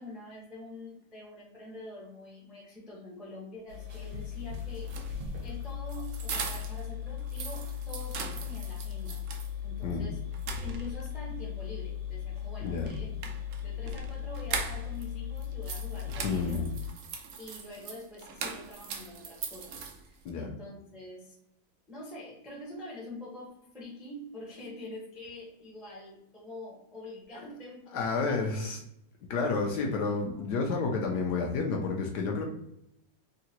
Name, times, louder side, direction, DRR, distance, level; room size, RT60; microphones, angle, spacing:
voice 1, 0.0-4.9 5.4-9.2 9.6-10.2 10.6-13.3 13.6-16.7 17.4-21.4 21.9-28.4, left 1 dB, ahead, -4 dB, 0.4 m, -45 dB
sound 1, 3.7-16.9, left 9 dB, 65° right, 1.1 m, -37 dB
sound 2, 4.8-6.9 7.2-9.5 9.9-10.0 10.3-11.2 12.8-15.1 15.4-20.3, right 5 dB, 80° right, 0.8 m, -40 dB
voice 2, 12.6-12.9 16.2-16.7 20.2-20.5 27.9-28.8 29.3-32.4, left 4 dB, 70° left, 1 dB, 1.1 m, -30 dB
3.7 x 2.1 x 2.8 m, 0.78 s
omnidirectional pair, 2.1 m